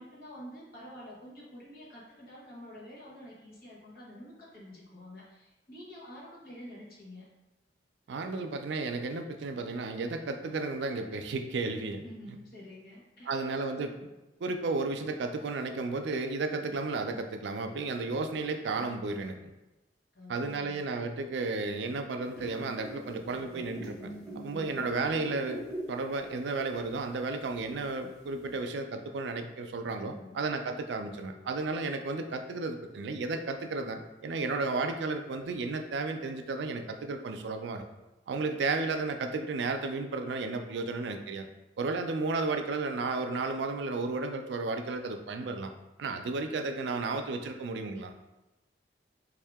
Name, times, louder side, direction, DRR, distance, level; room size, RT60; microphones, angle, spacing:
voice 1, 0.0-7.3 12.0-13.5 20.1-20.8 30.0-30.4, left 1 dB, 55° left, -5 dB, 1.1 m, -48 dB
voice 2, 8.1-12.0 13.2-14.0 14.4-19.5 20.3-25.6 25.9-37.8 38.3-41.5 41.8-45.7 46.0-48.1, right 3 dB, 80° right, 6 dB, 0.4 m, -33 dB
sound 1, 22.2-26.3 26.5-26.8 27.6-27.7, right 1 dB, ahead, 1.4 m, -42 dB
3.6 x 2.7 x 3.4 m, 1.0 s
head